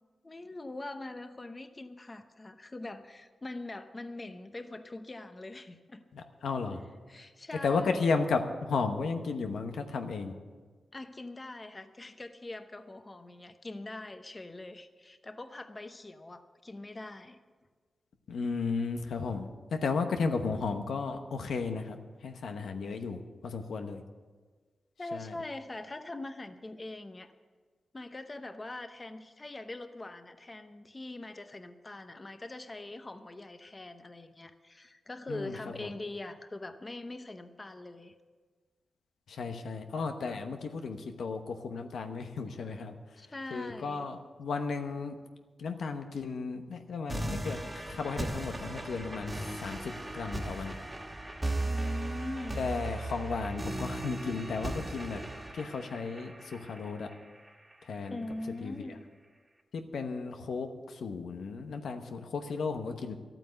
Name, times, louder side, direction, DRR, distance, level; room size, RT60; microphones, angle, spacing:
voice 1, 0.2-6.0 7.1-8.2 10.9-17.4 25.0-27.3 27.9-38.1 43.2-44.1 51.6-52.7 58.1-59.0, left 2 dB, 30° left, 9 dB, 0.8 m, -43 dB
voice 2, 6.1-6.8 7.6-10.3 18.3-22.0 22.2-24.0 25.1-25.3 35.3-35.5 35.8-35.9 39.3-42.9 43.5-45.2 45.6-50.7 52.6-55.2 55.5-57.1 57.9-58.2 58.6-58.7 59.7-63.1, left 4 dB, 90° left, 6 dB, 1.0 m, -34 dB
sound 1, 47.1-58.1, right 2 dB, 15° right, 1.6 m, -37 dB
12.5 x 9.0 x 7.9 m, 1.4 s
cardioid pair, 85°, 0 cm